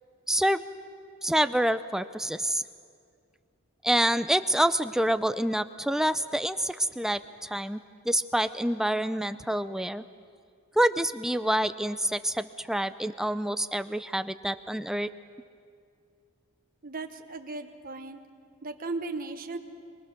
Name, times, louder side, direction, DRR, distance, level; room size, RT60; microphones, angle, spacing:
voice 1, 0.3-0.6 1.2-2.6 3.8-7.8 8.1-10.0 10.8-15.1, right 1 dB, ahead, 12 dB, 0.4 m, -27 dB
voice 2, 16.8-18.2 18.6-19.6, right 3 dB, 40° right, 6 dB, 1.1 m, -36 dB
23.5 x 21.5 x 6.7 m, 2.3 s
head